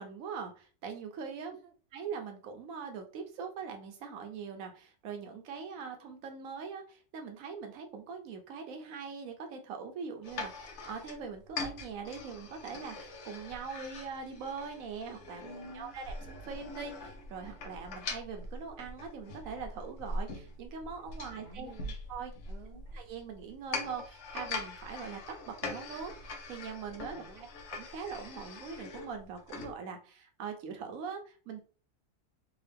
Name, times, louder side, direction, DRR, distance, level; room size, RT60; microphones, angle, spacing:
voice 1, 0.0-1.6 1.9-15.4 15.7-21.7 22.1-22.3 22.9-31.6, right 5 dB, 75° right, 5 dB, 1.1 m, -42 dB
sound 1, 10.2-29.8, left 3 dB, 60° left, 1.0 m, -43 dB
voice 2, 15.4-15.9 21.2-21.9 22.5-22.9 27.1-27.5, right 1 dB, 55° right, -2 dB, 0.9 m, -51 dB
3.7 x 2.3 x 3.4 m, 0.37 s
omnidirectional pair, 1.5 m